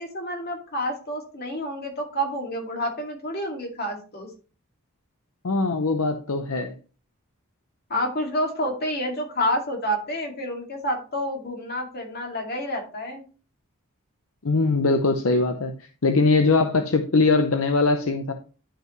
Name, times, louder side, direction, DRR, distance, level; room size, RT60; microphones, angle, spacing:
voice 1, 0.0-4.3 7.9-13.2, equal, 45° left, 1 dB, 2.3 m, -29 dB
voice 2, 5.4-6.7 14.4-15.7 16.0-18.3, left 3 dB, 65° left, 6 dB, 0.7 m, -21 dB
11.0 x 5.4 x 3.1 m, 0.36 s
head